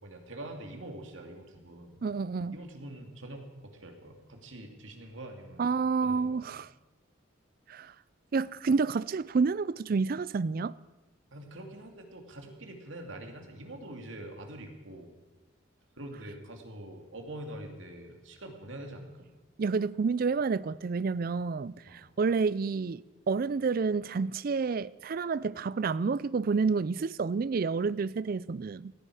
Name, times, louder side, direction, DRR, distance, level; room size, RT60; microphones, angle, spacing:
voice 1, 0.0-2.0 2.5-5.6 6.0-6.5 11.3-15.1 16.0-19.3 21.9-22.1, right 1 dB, 75° right, 2.4 m, -44 dB
voice 2, 2.0-2.6 5.6-6.7 7.7-7.9 8.3-10.8 19.6-28.9, right 4 dB, 45° right, 0.4 m, -29 dB
17.5 x 14.5 x 4.9 m
head